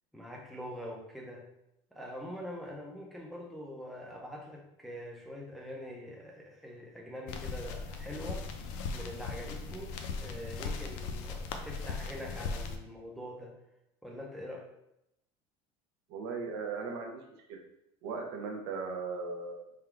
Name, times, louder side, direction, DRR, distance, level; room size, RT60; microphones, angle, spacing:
voice 1, 0.1-1.4 1.9-8.5 8.9-13.5 14.0-14.7, equal, ahead, -1 dB, 0.4 m, -44 dB
sound 1, 7.3-12.8, left 4 dB, 65° left, 0.5 m, -38 dB
voice 2, 16.1-17.2 17.5-17.6 18.0-19.7, right 4 dB, 85° right, 3 dB, 0.8 m, -37 dB
3.7 x 2.3 x 4.5 m, 0.84 s
cardioid pair, 165°, 13 cm